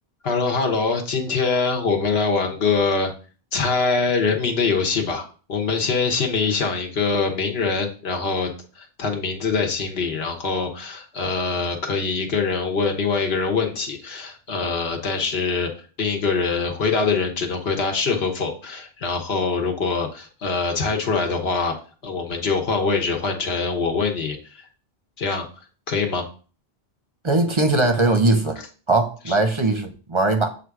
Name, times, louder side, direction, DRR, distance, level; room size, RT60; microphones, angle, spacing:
voice 1, 0.2-3.1 3.5-8.5 8.8-15.7 16.0-21.7 22.0-24.6 25.2-25.4 25.9-26.2 29.3-29.4, left 4 dB, 65° left, 1.3 m, -23 dB
voice 2, 27.2-28.6 28.9-30.5, right 2 dB, 30° right, 0.7 m, -20 dB
7.7 x 2.6 x 4.7 m
omnidirectional pair, 1.1 m